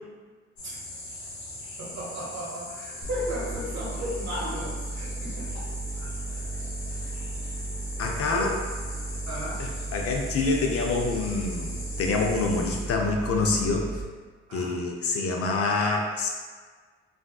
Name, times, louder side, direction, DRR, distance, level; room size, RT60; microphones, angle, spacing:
sound 1, 0.6-12.8, left 1 dB, 70° left, 0.9 m, -40 dB
voice 1, 1.8-5.5 6.0-6.1 8.2-8.5 9.2-9.6 14.5-14.8, equal, 60° right, -5 dB, 1.2 m, -35 dB
sound 2, 3.0-14.0, right 2 dB, 25° right, 0.7 m, -35 dB
voice 2, 8.0-8.5 9.6-13.8 14.5-16.3, left 3 dB, 50° left, 1 dB, 0.5 m, -26 dB
3.4 x 2.6 x 2.3 m, 1.5 s
cardioid pair, 90°, 30 cm